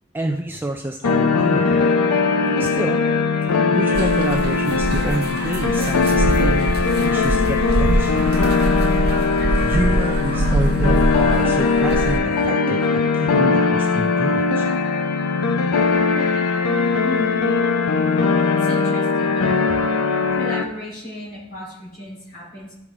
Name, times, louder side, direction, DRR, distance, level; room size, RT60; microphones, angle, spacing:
voice 1, 0.1-1.9 2.6-3.0 3.4-6.7 7.0-8.3 9.6-14.7 15.7-17.0, right 1 dB, 10° right, 3 dB, 0.3 m, -28 dB
sound 1, 1.0-20.6, left 4 dB, 85° left, 0.7 m, -20 dB
sound 2, 3.9-12.2, right 2 dB, 45° right, 0.6 m, -23 dB
voice 2, 17.0-17.4 18.4-20.0 20.3-22.7, left 1 dB, 40° left, -6 dB, 3.6 m, -35 dB
12.5 x 4.8 x 3.6 m, 0.83 s
head